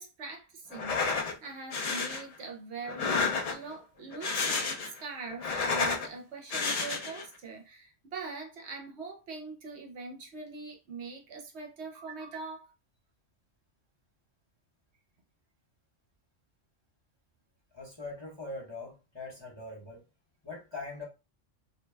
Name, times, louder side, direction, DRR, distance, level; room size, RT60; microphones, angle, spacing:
voice 1, 0.0-12.7, right 4 dB, 65° right, 0.9 m, -43 dB
sound 1, 0.7-1.3 1.7-2.2 2.9-3.7 4.1-5.0 5.3-6.1 6.5-7.3, left 4 dB, 70° left, 0.3 m, -30 dB
voice 2, 17.7-20.0 20.4-21.0, left 3 dB, 25° left, 0.8 m, -42 dB
2.6 x 2.1 x 3.2 m
omnidirectional pair, 1.3 m